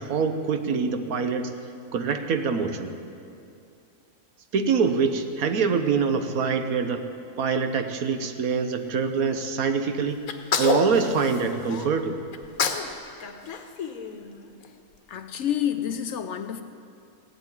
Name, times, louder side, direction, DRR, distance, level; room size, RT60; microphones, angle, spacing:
voice 1, 0.0-1.5 1.9-2.9 4.5-7.0 7.4-10.2 10.6-12.2, right 5 dB, 80° right, 7 dB, 1.4 m, -25 dB
Sneeze, 10.3-11.9 12.3-12.9 13.2-14.7, left 5 dB, 80° left, 1.4 m, -28 dB
voice 2, 15.1-16.6, left 10 dB, 60° left, 9 dB, 0.9 m, -28 dB
16.0 x 8.1 x 9.8 m, 2.5 s
omnidirectional pair, 1.5 m